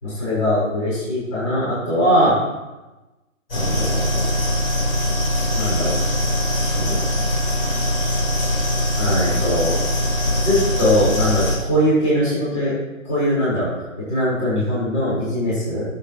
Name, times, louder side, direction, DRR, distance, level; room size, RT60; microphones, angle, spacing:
voice 1, 0.0-2.3 3.5-4.3 5.5-6.0 6.6-7.0 9.0-9.8 10.4-12.7 13.0-13.7 14.1-15.9, equal, 20° left, -10 dB, 5.3 m, -21 dB
sound 1, 3.5-11.6, left 1 dB, 45° left, 4.6 m, -22 dB
21.5 x 8.3 x 3.3 m, 1.1 s
hypercardioid pair, 175°, 41 cm